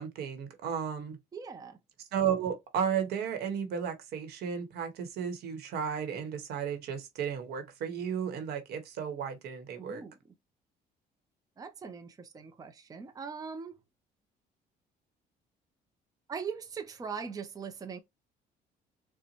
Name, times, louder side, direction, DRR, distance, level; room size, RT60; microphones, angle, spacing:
voice 1, 0.0-1.2 2.1-10.0, right 7 dB, 75° right, 1.0 m, -34 dB
voice 2, 1.3-1.8 9.8-10.2 11.6-13.8 16.3-18.0, right 6 dB, 20° right, 0.5 m, -41 dB
4.0 x 2.1 x 2.9 m
cardioid pair, 110°, 17 cm